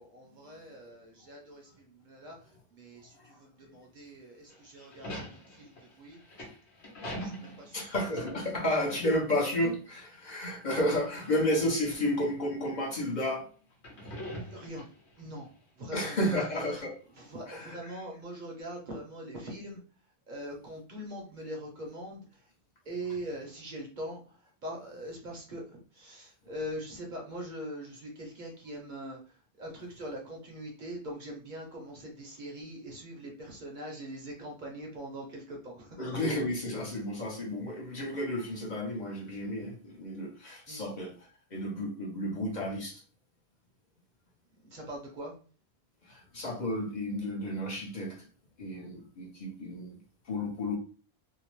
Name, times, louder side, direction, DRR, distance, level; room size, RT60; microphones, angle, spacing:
voice 1, 0.0-2.4 2.7-6.2 7.2-7.8 14.0-14.9 15.2-15.5 15.7-16.4 17.2-19.8 20.3-22.5 22.8-36.0 40.7-40.9 44.6-45.4, right 1 dB, 50° right, 0 dB, 0.8 m, -42 dB
sound 1, 4.5-9.4 9.6-9.8 10.8-11.6 12.3-12.4 13.7-15.2, equal, 90° left, 1.2 m, -42 dB
voice 2, 7.7-13.5 15.9-17.0 17.5-18.0 36.0-43.0 46.0-48.3 48.6-49.9 50.2-50.8, left 1 dB, 50° left, -2 dB, 0.8 m, -32 dB
2.7 x 2.0 x 2.9 m, 0.38 s
omnidirectional pair, 1.1 m